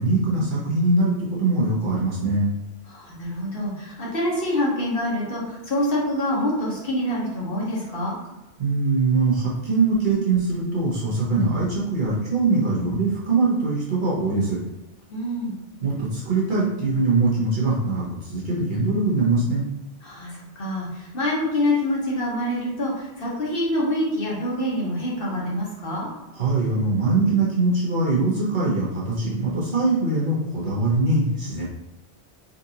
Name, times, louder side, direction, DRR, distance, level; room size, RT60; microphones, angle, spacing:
voice 1, 0.0-2.5 8.6-14.6 15.8-19.6 26.3-31.6, right 3 dB, 50° right, -6 dB, 1.0 m, -22 dB
voice 2, 2.9-8.2 15.1-15.5 20.0-26.1, left 1 dB, 55° left, -4 dB, 1.1 m, -26 dB
4.0 x 2.5 x 2.7 m, 0.93 s
omnidirectional pair, 1.2 m